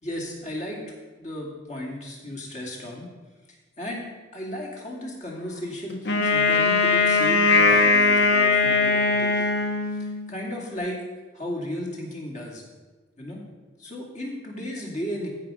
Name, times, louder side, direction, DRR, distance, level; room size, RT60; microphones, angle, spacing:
voice 1, 0.0-3.1 3.8-9.5 9.9-11.0 11.3-12.6 13.2-13.4 13.8-15.3, left 1 dB, 40° left, -1 dB, 2.5 m, -34 dB
Wind instrument woodwind instrument, 6.0-10.3, left 4 dB, 70° left, 1.2 m, -20 dB
14.5 x 5.1 x 5.5 m, 1.2 s
head